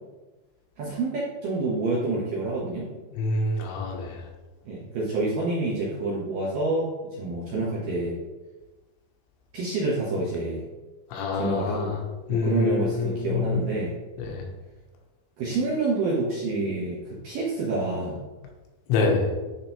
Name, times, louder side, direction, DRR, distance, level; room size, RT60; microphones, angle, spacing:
voice 1, 0.8-2.9 4.6-8.2 9.5-10.7 11.3-11.9 12.3-14.0 15.4-18.2, right 2 dB, 70° right, -7 dB, 2.0 m, -28 dB
voice 2, 3.2-4.2 11.1-12.0 12.3-13.6 14.2-14.4 18.9-19.3, left 3 dB, 85° left, 1 dB, 3.2 m, -26 dB
10.0 x 3.6 x 2.9 m, 1.2 s
omnidirectional pair, 5.2 m